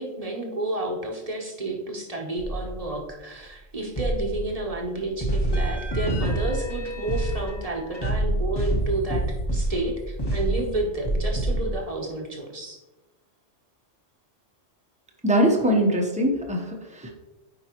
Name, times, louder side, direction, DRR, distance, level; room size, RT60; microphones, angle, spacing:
voice 1, 0.0-9.2 9.5-12.8, right 2 dB, 30° right, 0 dB, 1.0 m, -30 dB
sound 1, 2.4-3.1 4.0-4.9 5.2-11.7, right 1 dB, 20° left, 1.3 m, -27 dB
voice 2, 15.2-17.1, equal, 5° right, 1 dB, 0.8 m, -22 dB
9.1 x 4.5 x 3.0 m, 1.0 s
omnidirectional pair, 1.3 m